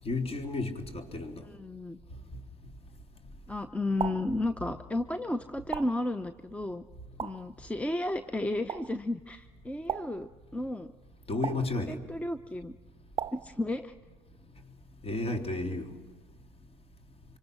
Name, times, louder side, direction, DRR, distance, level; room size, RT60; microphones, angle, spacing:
voice 1, 0.1-1.3 4.3-4.4 11.3-12.0 15.0-15.9, left 2 dB, 35° left, 3.7 m, -32 dB
voice 2, 1.4-2.0 3.5-6.8 7.2-10.9 11.3-12.7 13.4-13.9, left 1 dB, 5° left, 0.8 m, -33 dB
sound 1, 4.0-4.4 5.7-6.1 7.2-7.5 8.7-9.0 9.9-10.3 11.4-11.8 13.2-13.6, right 8 dB, 35° right, 0.9 m, -36 dB
25.5 x 25.0 x 6.4 m
hypercardioid pair, 75°, 18 cm